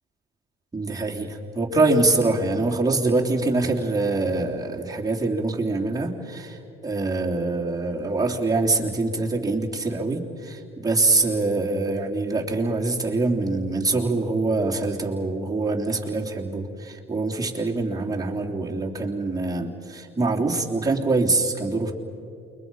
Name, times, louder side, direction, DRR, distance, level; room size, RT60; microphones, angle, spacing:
voice 1, 0.7-21.9, right 3 dB, 15° right, -2 dB, 3.4 m, -24 dB
28.5 x 23.5 x 5.6 m, 2.6 s
cardioid pair, 90°, 21 cm